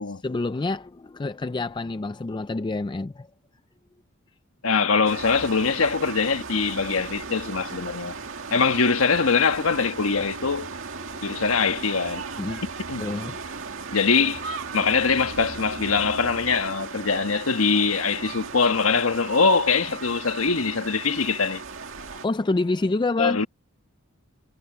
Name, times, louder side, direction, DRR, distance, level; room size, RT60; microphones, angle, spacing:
voice 1, 0.2-3.3 11.1-11.4 12.4-12.6 13.0-13.4 21.9-23.4, left 3 dB, 20° left, 0.4 m, -27 dB
voice 2, 4.6-8.1 8.5-10.7 11.2-12.3 12.9-13.0 13.9-21.6 23.2-23.5, left 5 dB, 85° left, 1.4 m, -23 dB
sound 1, 5.0-22.3, right 4 dB, 65° right, 2.2 m, -37 dB
head